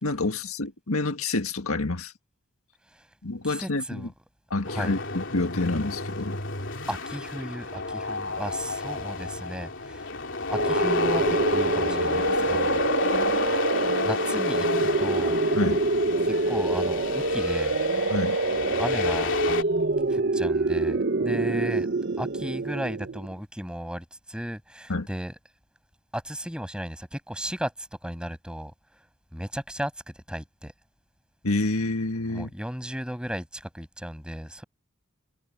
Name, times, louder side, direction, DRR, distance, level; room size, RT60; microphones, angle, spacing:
voice 1, 0.0-2.1 3.2-4.1 4.5-6.4 15.6-15.8 18.1-18.4 24.9-25.1 31.4-32.5, left 2 dB, 85° left, 1.8 m, -28 dB
voice 2, 3.4-4.1 4.7-5.0 6.9-10.1 10.5-12.9 14.0-15.4 16.2-17.8 18.8-19.5 20.1-21.9 22.2-25.3 26.1-28.7 29.3-30.7 32.3-34.6, equal, 5° right, 6.5 m, -35 dB
sound 1, 4.6-19.6, left 3 dB, 60° left, 3.4 m, -31 dB
sound 2, 10.5-23.3, right 2 dB, 55° right, 0.9 m, -26 dB
head